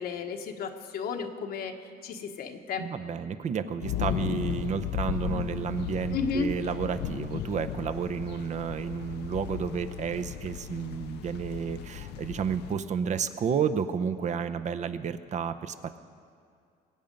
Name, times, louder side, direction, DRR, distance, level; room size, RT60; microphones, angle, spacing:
voice 1, 0.0-1.8 2.0-2.9 6.1-6.5, left 5 dB, 65° left, 5 dB, 1.2 m, -33 dB
voice 2, 2.8-16.0, right 7 dB, 45° right, 10 dB, 0.7 m, -31 dB
sound 1, 3.8-12.7, left 11 dB, 85° left, 0.6 m, -35 dB
22.5 x 8.7 x 5.3 m, 2.3 s
cardioid pair, 110°, 17 cm